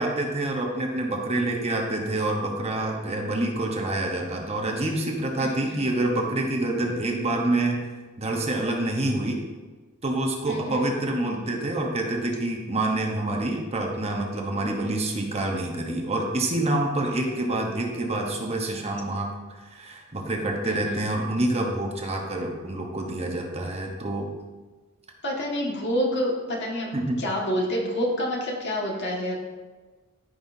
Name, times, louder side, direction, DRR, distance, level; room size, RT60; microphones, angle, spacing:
voice 1, 0.0-7.8 8.2-9.4 10.0-19.3 19.6-24.3 26.9-27.2, right 2 dB, 30° right, 1 dB, 1.0 m, -27 dB
voice 2, 5.4-5.8 10.5-10.8 20.6-21.0 25.2-26.9 27.2-29.4, equal, 55° left, -2 dB, 1.8 m, -28 dB
13.5 x 5.6 x 2.7 m, 1.3 s
head